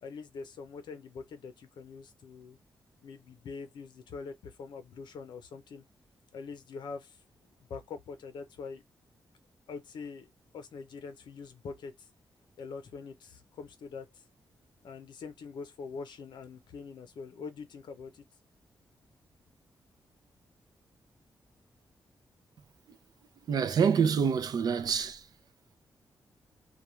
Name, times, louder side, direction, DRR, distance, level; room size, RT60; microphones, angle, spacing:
voice 1, 0.0-2.6 3.0-5.8 6.3-8.8 9.7-12.1 12.6-14.2 14.8-18.2, left 5 dB, 80° left, 0.6 m, -44 dB
voice 2, 23.5-25.3, right 6 dB, 60° right, 0.5 m, -27 dB
2.3 x 2.2 x 3.0 m
wide cardioid pair, 150°, 8 cm